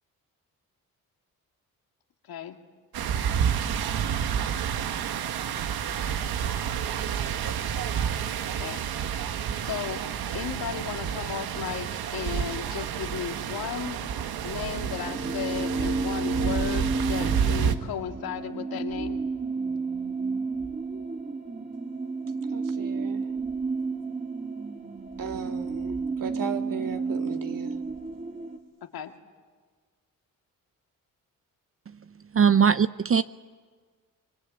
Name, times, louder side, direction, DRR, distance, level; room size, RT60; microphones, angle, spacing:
voice 1, 2.2-2.6 8.6-8.8 9.7-14.0 14.4-19.2 28.8-29.2, left 9 dB, 80° left, 2.3 m, -35 dB
sound 1, 2.9-17.7, right 8 dB, 80° right, 1.5 m, -29 dB
sound 2, 14.8-28.6, right 3 dB, 20° right, 2.9 m, -31 dB
voice 2, 22.5-23.3 25.2-27.8, right 6 dB, 60° right, 2.8 m, -36 dB
voice 3, 32.3-33.2, right 7 dB, 40° right, 0.7 m, -20 dB
26.5 x 23.0 x 9.0 m
supercardioid pair, 60°, 36 cm